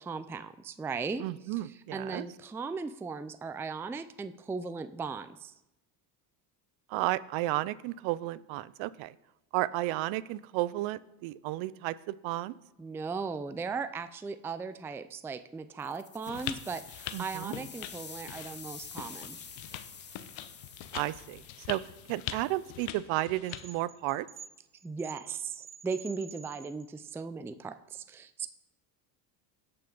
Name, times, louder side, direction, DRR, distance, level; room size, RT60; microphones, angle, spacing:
voice 1, 0.0-5.5 12.8-19.4 24.8-28.5, right 4 dB, 5° right, 11 dB, 0.3 m, -37 dB
voice 2, 1.2-2.2 6.9-9.1 9.5-12.5 17.1-17.5 20.9-21.8 22.1-24.3, right 17 dB, 70° right, 18 dB, 0.6 m, -33 dB
sound 1, 15.8-22.9, left 6 dB, 20° left, 0.9 m, -48 dB
sound 2, 16.3-23.8, left 12 dB, 75° left, 0.9 m, -43 dB
sound 3, 23.5-27.1, right 7 dB, 25° right, 1.2 m, -50 dB
17.0 x 5.8 x 3.9 m, 0.93 s
supercardioid pair, 90°, 49 cm